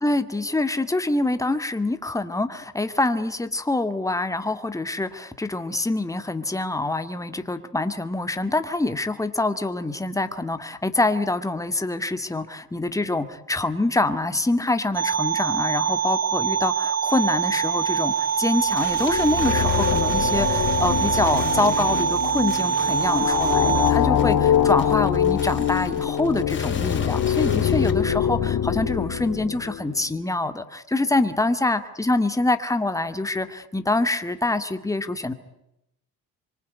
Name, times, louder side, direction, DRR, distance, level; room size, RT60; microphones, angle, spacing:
voice 1, 0.0-35.3, left 2 dB, 10° left, 9 dB, 2.1 m, -25 dB
sound 1, 14.9-23.9, right 6 dB, 40° right, 1.9 m, -24 dB
sound 2, 17.1-27.9, left 5 dB, 30° left, 4.6 m, -40 dB
sound 3, 18.8-30.0, left 9 dB, 60° left, 3.0 m, -24 dB
25.5 x 24.0 x 9.5 m, 0.85 s
cardioid pair, 100°, 39 cm